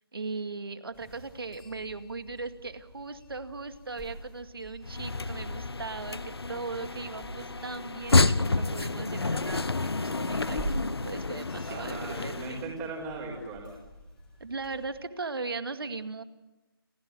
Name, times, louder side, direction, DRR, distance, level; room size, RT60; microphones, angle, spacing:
voice 1, 0.1-10.7 11.0-12.6 14.4-16.2, right 3 dB, 70° right, 9 dB, 2.3 m, -38 dB
sound 1, 0.9-15.0, right 1 dB, 5° left, 4.7 m, -46 dB
sound 2, 4.8-12.7, left 3 dB, 85° left, 1.2 m, -29 dB
voice 2, 11.7-13.7, right 3 dB, 15° right, -7 dB, 4.8 m, -38 dB
30.0 x 15.5 x 9.7 m, 1.1 s
figure-of-eight pair, 160°, 13 cm